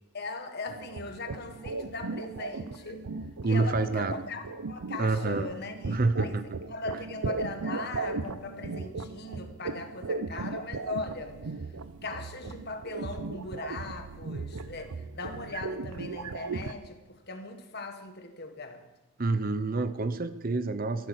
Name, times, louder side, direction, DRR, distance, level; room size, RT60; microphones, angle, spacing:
voice 1, 0.1-3.0 3.4-6.4 6.7-11.3 12.0-18.8, left 3 dB, 45° left, 6 dB, 1.6 m, -39 dB
sound 1, 0.7-16.7, right 4 dB, 85° right, 0.6 m, -37 dB
voice 2, 3.4-4.1 5.0-5.5 5.9-6.4 19.2-21.1, right 3 dB, 40° right, 12 dB, 0.6 m, -27 dB
13.5 x 12.0 x 6.5 m, 1.0 s
head